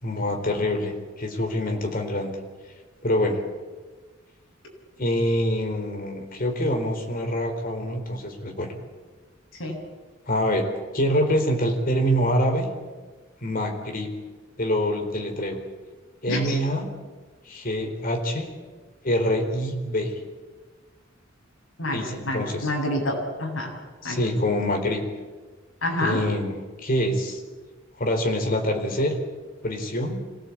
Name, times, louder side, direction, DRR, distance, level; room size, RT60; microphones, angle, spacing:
voice 1, 0.0-2.3 3.0-3.4 5.0-8.7 10.3-10.7 10.9-12.7 13.4-14.1 14.6-15.6 16.2-16.9 17.5-18.5 19.0-20.1 21.9-22.7 24.0-25.0 26.0-27.4 28.0-29.2 29.6-30.2, equal, 45° left, 4 dB, 4.2 m, -25 dB
voice 2, 21.8-23.7 24.0-24.2 25.8-26.3, left 1 dB, 75° left, 0 dB, 7.6 m, -28 dB
26.0 x 17.5 x 8.6 m, 1.4 s
head